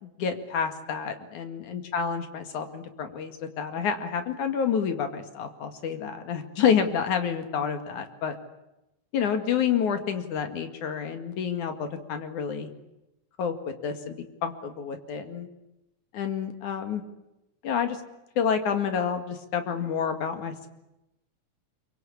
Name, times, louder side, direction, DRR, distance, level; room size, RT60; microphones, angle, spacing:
voice 1, 0.0-8.4 9.1-12.7 13.4-13.5 13.8-14.2 14.4-15.5 16.1-17.0 17.6-18.0 18.4-20.7, left 7 dB, 85° left, 7 dB, 3.6 m, -28 dB
25.0 x 23.5 x 8.7 m, 0.91 s
omnidirectional pair, 3.3 m